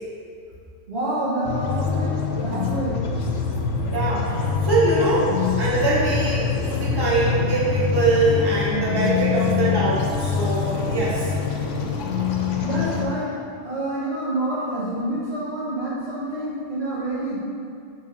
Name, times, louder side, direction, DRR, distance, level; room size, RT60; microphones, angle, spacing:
voice 1, 0.9-3.0 12.6-13.3 13.6-17.4, right 1 dB, 55° right, -8 dB, 1.7 m, -27 dB
sound 1, 1.4-13.0, left 6 dB, 75° left, 1.1 m, -24 dB
voice 2, 3.9-11.3, right 2 dB, 20° right, -8 dB, 1.3 m, -23 dB
6.4 x 4.0 x 5.4 m, 2.5 s
omnidirectional pair, 1.3 m